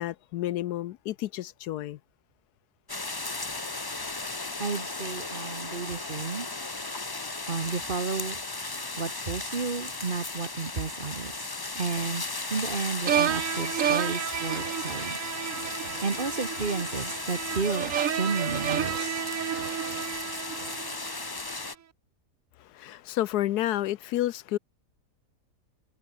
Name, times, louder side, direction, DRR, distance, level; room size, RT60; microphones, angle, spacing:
voice 1, 0.0-2.0 22.6-24.6, left 14 dB, 75° left, 1.1 m, -30 dB
sound 1, 2.9-21.7, left 3 dB, 20° left, 0.8 m, -36 dB
voice 2, 4.6-6.5 7.5-8.4 9.0-11.3 11.7-12.2 12.5-15.2 16.0-19.2, right 4 dB, 35° right, 1.3 m, -32 dB
sound 2, 13.1-21.3, right 9 dB, 55° right, 1.3 m, -31 dB
omnidirectional pair, 1.8 m